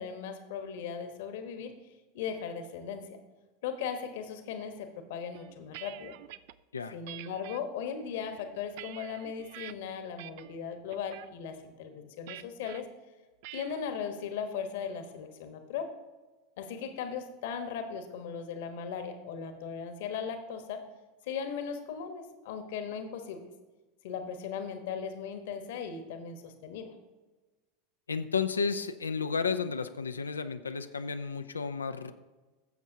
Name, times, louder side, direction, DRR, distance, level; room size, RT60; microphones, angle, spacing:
voice 1, 0.0-1.7 2.1-3.2 3.6-6.1 6.9-12.9 13.5-15.9 16.6-20.8 21.3-23.5 24.0-26.9, left 7 dB, 65° left, 7 dB, 1.2 m, -38 dB
sound 1, 5.3-6.5 7.1-7.6 8.2-9.7 10.2-10.6 10.9-11.3 12.3-12.8 13.4-13.8, right 15 dB, 60° right, 0.3 m, -46 dB
voice 2, 28.1-32.1, left 5 dB, 85° left, 9 dB, 0.4 m, -32 dB
15.5 x 7.2 x 2.8 m, 1.2 s
figure-of-eight pair, 85°, 0 cm